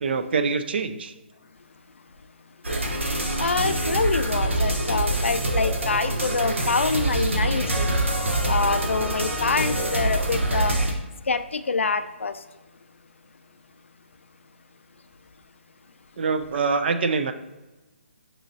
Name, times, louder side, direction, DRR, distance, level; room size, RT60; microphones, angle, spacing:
voice 1, 0.0-1.1 16.2-17.3, right 4 dB, 55° right, 8 dB, 0.4 m, -24 dB
sound 1, 2.6-10.9, right 1 dB, 85° right, 0.9 m, -25 dB
voice 2, 3.4-7.9 8.5-10.7 11.3-12.4, left 4 dB, 85° left, 10 dB, 0.3 m, -26 dB
6.3 x 3.1 x 2.6 m, 1.1 s
hypercardioid pair, 145°, 7 cm